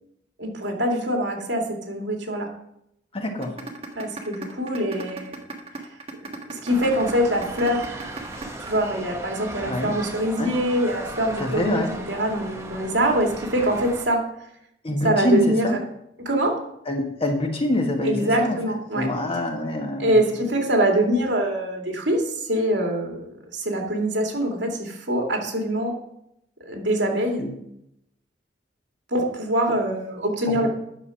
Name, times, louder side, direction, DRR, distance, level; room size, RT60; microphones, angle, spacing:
voice 1, 0.4-2.5 4.0-5.4 6.5-7.9 8.6-11.8 12.1-14.3 15.0-15.7 16.2-16.5 18.0-19.1 20.0-22.2 22.5-25.9 26.7-27.4 29.1-30.7, right 1 dB, 70° right, 1 dB, 2.5 m, -24 dB
voice 2, 3.1-3.6 9.6-10.0 10.4-10.6 11.4-11.9 14.8-15.8 16.8-18.6 18.9-20.2 27.4-27.5 30.5-30.7, left 1 dB, 30° left, 3 dB, 1.5 m, -25 dB
sound 1, 3.4-9.4, right 3 dB, 30° right, 1.4 m, -36 dB
sound 2, 6.7-14.0, right 1 dB, 15° right, 1.2 m, -37 dB
10.0 x 6.5 x 5.8 m, 0.77 s
head